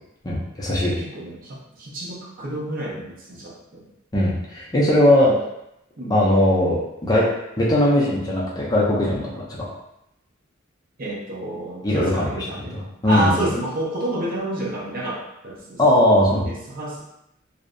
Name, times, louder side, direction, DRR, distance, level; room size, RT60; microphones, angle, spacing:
voice 1, 0.2-0.9 4.1-5.3 6.1-7.3 7.6-9.7 11.8-12.3 13.0-13.4 15.8-16.5, left 1 dB, 20° left, -5 dB, 0.4 m, -19 dB
voice 2, 0.9-3.9 5.2-5.4 6.0-6.2 11.0-15.8 16.4-17.0, right 1 dB, 45° right, -4 dB, 0.6 m, -29 dB
2.6 x 2.0 x 2.5 m, 0.84 s
head